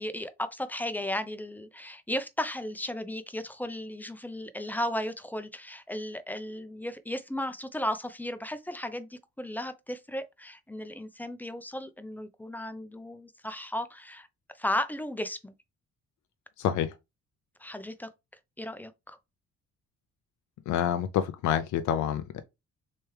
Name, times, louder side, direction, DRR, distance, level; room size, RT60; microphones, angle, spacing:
voice 1, 0.0-14.3 14.6-15.5 17.6-18.1 18.6-19.2, left 1 dB, 5° left, 0.4 m, -35 dB
voice 2, 16.6-16.9 20.7-22.4, left 10 dB, 70° left, 0.5 m, -28 dB
3.3 x 3.1 x 3.1 m
cardioid pair, 90°, 30 cm